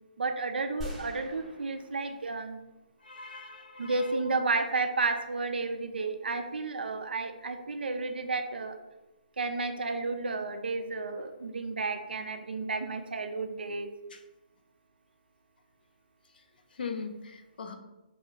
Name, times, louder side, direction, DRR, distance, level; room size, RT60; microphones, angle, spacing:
voice 1, 0.2-2.6 3.8-8.8 9.4-13.9, right 3 dB, 80° right, 7 dB, 0.4 m, -32 dB
sound 1, 0.8-3.1, equal, 5° right, 0.6 m, -44 dB
voice 2, 3.0-4.2 14.1-14.2 16.7-17.8, left 5 dB, 70° left, 5 dB, 0.4 m, -40 dB
2.3 x 2.3 x 3.1 m, 0.99 s
figure-of-eight pair, 140°, 5 cm